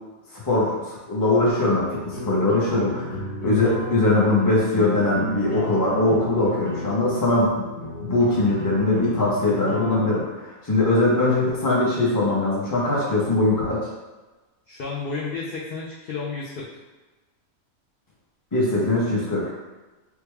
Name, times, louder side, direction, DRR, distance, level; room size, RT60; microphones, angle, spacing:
voice 1, 0.4-7.7 8.0-13.9 18.5-19.6, left 2 dB, 20° left, -6 dB, 0.6 m, -21 dB
sound 1, 1.7-10.1, left 1 dB, 40° left, 1.8 m, -33 dB
voice 2, 14.7-16.7, left 4 dB, 60° left, -5 dB, 0.6 m, -31 dB
3.4 x 2.2 x 3.3 m, 1.2 s
omnidirectional pair, 1.4 m